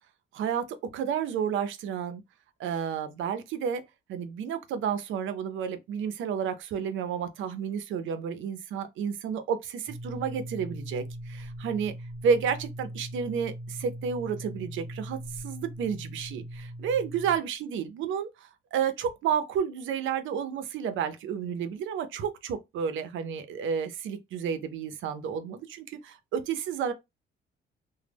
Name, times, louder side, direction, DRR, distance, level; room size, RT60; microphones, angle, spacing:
voice 1, 0.3-2.2 2.6-3.8 4.1-11.9 12.2-26.9, right 7 dB, 75° right, 0.5 m, -31 dB
sound 1, 9.9-17.4, right 1 dB, 30° right, 0.7 m, -40 dB
2.0 x 2.0 x 3.3 m
cardioid pair, 90°, 20 cm